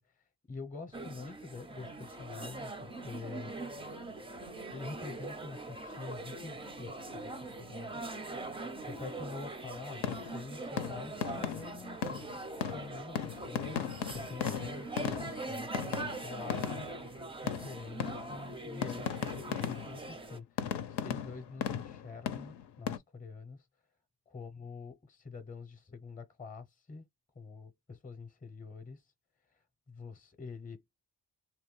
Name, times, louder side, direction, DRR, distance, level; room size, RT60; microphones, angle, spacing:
voice 1, 0.5-3.5 4.7-8.0 8.9-12.3 12.7-16.9 17.4-20.5 20.9-23.7 24.3-27.1 27.4-29.1 29.9-30.8, left 4 dB, 20° left, 0.7 m, -46 dB
sound 1, 0.9-20.4, right 2 dB, 15° right, 0.4 m, -42 dB
sound 2, 10.0-10.5 10.8-17.1 17.5-18.5 18.8-20.1 20.6-23.0, left 9 dB, 75° left, 0.6 m, -37 dB
2.7 x 2.2 x 3.1 m
cardioid pair, 75°, 40 cm